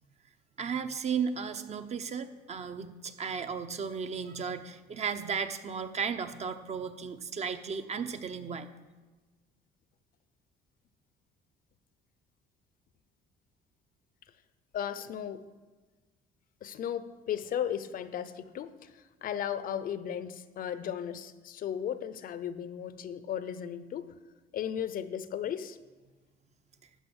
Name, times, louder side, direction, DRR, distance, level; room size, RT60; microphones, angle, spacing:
voice 1, 0.6-8.7, right 6 dB, 40° right, 9 dB, 0.8 m, -35 dB
voice 2, 14.7-15.4 16.6-24.1 24.5-25.8, left 9 dB, 55° left, 14 dB, 0.7 m, -35 dB
13.0 x 5.2 x 8.0 m, 1.3 s
cardioid pair, 110°, 17 cm